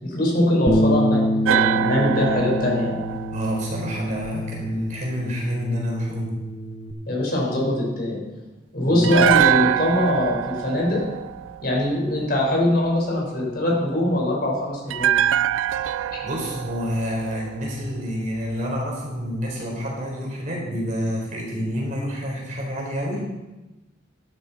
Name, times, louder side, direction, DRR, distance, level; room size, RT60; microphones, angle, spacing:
voice 1, 0.0-3.0 7.1-8.2 8.7-11.0 11.6-15.2 16.1-16.2, left 1 dB, 55° left, -2 dB, 4.4 m, -22 dB
Bass guitar, 0.7-6.9, equal, 25° left, 0.7 m, -26 dB
sound 1, 1.4-4.6 9.0-12.2 14.9-18.1 18.4-18.5, right 11 dB, 80° right, 0.3 m, -24 dB
voice 2, 3.3-6.4 8.8-9.3 15.8-23.3, equal, 40° right, -2 dB, 3.9 m, -28 dB
12.5 x 12.0 x 4.1 m, 1.1 s
head